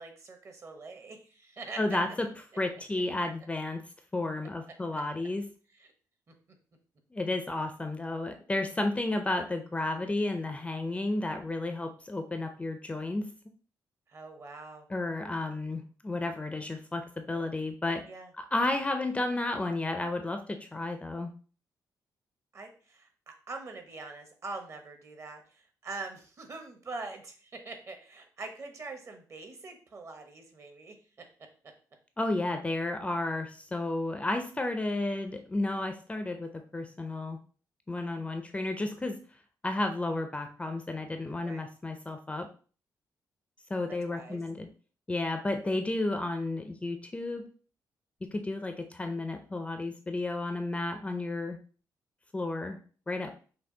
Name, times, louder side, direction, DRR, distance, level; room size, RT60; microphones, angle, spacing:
voice 1, 0.0-1.8 4.9-5.0 5.8-5.9 14.1-14.9 18.1-18.3 22.5-31.3 41.4-41.6 43.9-44.4, right 3 dB, 40° right, 5 dB, 1.0 m, -44 dB
voice 2, 1.8-2.3 2.6-3.8 4.1-5.5 7.1-13.3 14.9-18.0 18.4-21.3 32.2-37.4 37.9-39.2 39.6-42.5 43.7-44.7 45.1-47.5 48.2-51.6 52.3-52.8 53.1-53.3, left 2 dB, 15° left, 6 dB, 0.5 m, -32 dB
5.7 x 2.3 x 3.8 m, 0.40 s
cardioid pair, 130°, 7 cm